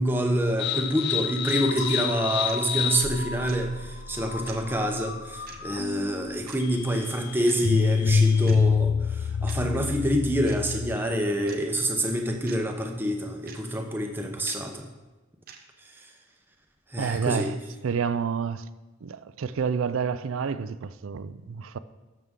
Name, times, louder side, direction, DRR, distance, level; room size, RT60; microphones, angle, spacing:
voice 1, 0.0-14.9 16.0-16.1 16.9-17.5, equal, 10° right, 0.8 m, -27 dB
sound 1, 0.6-11.2, left 5 dB, 55° left, 0.4 m, -27 dB
sound 2, 0.6-0.7 1.5-1.6 2.5-2.6 3.5-3.6 4.5-4.6 5.5-5.6 6.5-6.6 7.5-7.6 8.5-8.6 9.5-9.6 10.5-10.6 11.5-11.6 12.5-12.6 13.5-13.6 14.5-14.6 15.5-15.6, right 7 dB, 45° right, 0.9 m, -44 dB
sound 3, 1.8-3.6 4.7-6.3, right 1 dB, 35° left, 1.9 m, -46 dB
voice 2, 17.0-18.7 19.0-21.8, right 6 dB, 80° right, 0.4 m, -29 dB
12.0 x 6.9 x 3.7 m
head